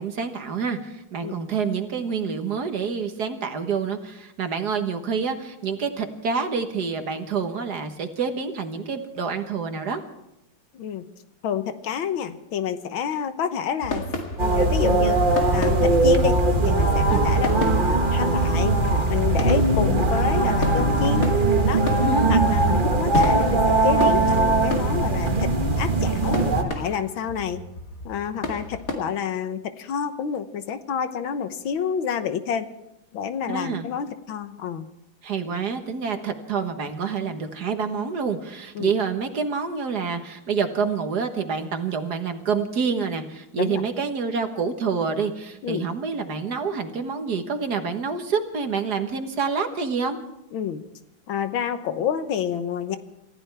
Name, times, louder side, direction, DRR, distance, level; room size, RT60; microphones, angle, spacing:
voice 1, 0.0-10.0 17.1-17.2 22.0-22.4 33.5-33.8 35.2-50.2, right 5 dB, 55° right, 6 dB, 1.8 m, -27 dB
voice 2, 10.7-11.0 11.4-14.0 14.4-15.2 15.5-18.8 19.1-21.3 21.6-21.8 22.3-25.5 25.8-27.6 28.0-32.7 33.1-34.9 38.7-38.9 43.6-43.8 45.6-45.9 50.5-50.8 51.3-53.0, left 8 dB, 85° left, 10 dB, 1.8 m, -28 dB
sound 1, 13.8-29.0, left 2 dB, 45° left, 2.5 m, -33 dB
sound 2, 14.4-26.6, right 2 dB, 30° right, 1.4 m, -20 dB
28.5 x 15.0 x 3.4 m, 0.88 s
omnidirectional pair, 2.2 m